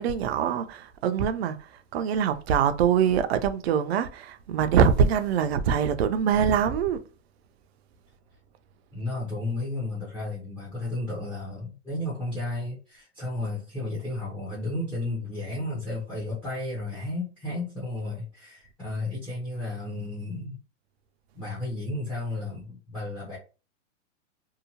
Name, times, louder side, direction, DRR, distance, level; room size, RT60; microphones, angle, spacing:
voice 1, 0.0-7.0, right 7 dB, 55° right, 0.5 m, -24 dB
voice 2, 8.9-20.6 21.3-23.4, left 2 dB, 5° left, 0.5 m, -33 dB
2.7 x 2.1 x 2.8 m
hypercardioid pair, 155°, 38 cm